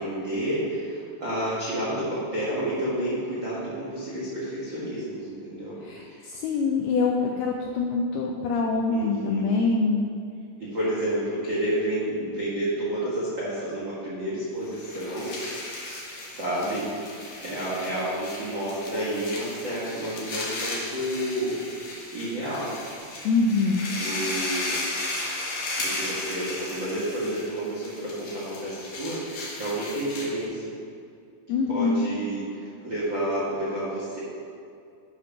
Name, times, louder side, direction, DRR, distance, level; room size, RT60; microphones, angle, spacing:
voice 1, 0.0-5.8 6.0-6.2 8.9-9.5 10.6-15.4 16.3-21.6 21.9-22.8 24.0-24.8 25.7-30.7 31.7-34.2, right 1 dB, 90° right, -8 dB, 1.0 m, -30 dB
voice 2, 5.8-10.1 23.2-23.9 31.5-32.1, left 4 dB, 85° left, 1 dB, 2.2 m, -24 dB
sound 1, 14.7-30.4, left 2 dB, 55° left, 2.3 m, -35 dB
12.0 x 5.3 x 5.8 m, 2.4 s
omnidirectional pair, 5.3 m